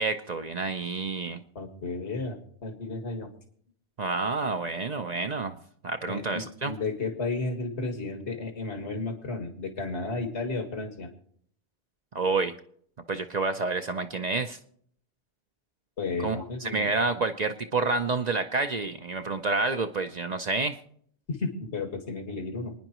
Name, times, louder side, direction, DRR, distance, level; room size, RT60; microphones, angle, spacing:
voice 1, 0.0-1.4 4.0-5.6 5.8-6.7 12.1-12.5 13.1-14.6 16.2-16.4 16.6-20.8, right 3 dB, 45° right, 7 dB, 0.6 m, -28 dB
voice 2, 1.6-3.3 6.1-11.1 16.0-16.9 21.3-22.7, left 3 dB, 80° left, 4 dB, 2.1 m, -33 dB
27.5 x 9.9 x 3.0 m, 0.64 s
omnidirectional pair, 1.1 m